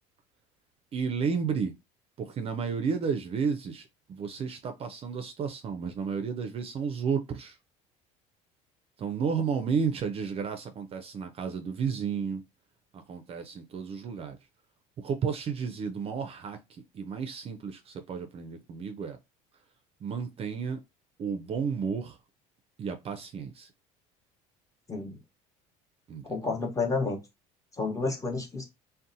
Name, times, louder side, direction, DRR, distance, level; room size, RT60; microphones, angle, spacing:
voice 1, 0.9-1.8 2.2-7.6 9.0-12.4 12.9-14.4 15.0-19.2 20.0-20.8 21.2-22.2 22.8-23.7 26.1-26.6, right 6 dB, 40° right, 0.4 m, -32 dB
voice 2, 26.2-27.2 27.8-28.6, left 3 dB, 20° left, 0.9 m, -30 dB
2.6 x 2.1 x 2.6 m
supercardioid pair, 95°, 16 cm